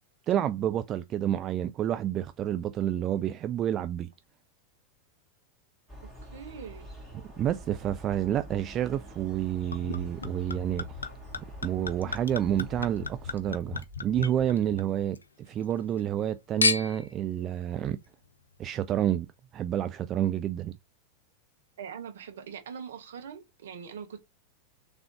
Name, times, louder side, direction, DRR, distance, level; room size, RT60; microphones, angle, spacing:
voice 1, 0.3-4.1 7.1-10.8 11.6-18.0 18.6-19.3 19.5-20.7, right 11 dB, 30° right, 0.3 m, -29 dB
sound 1, 5.9-13.9, right 1 dB, ahead, 2.3 m, -46 dB
voice 2, 6.3-6.8 21.8-24.2, right 7 dB, 60° right, 0.9 m, -42 dB
Chink clink / Liquid, 9.7-15.2 15.6-16.2 16.6-17.1 17.9-18.0, left 3 dB, 75° left, 0.5 m, -33 dB
3.7 x 3.4 x 2.8 m
figure-of-eight pair, 90°, 0 cm